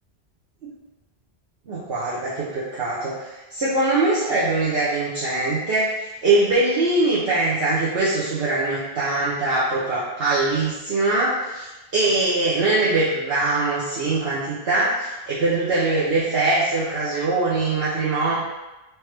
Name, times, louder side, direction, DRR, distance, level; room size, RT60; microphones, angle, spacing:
voice 1, 1.7-5.9 6.2-11.7 11.9-18.3, right 2 dB, 70° right, -8 dB, 1.1 m, -22 dB
4.5 x 3.4 x 3.3 m, 1.1 s
omnidirectional pair, 1.1 m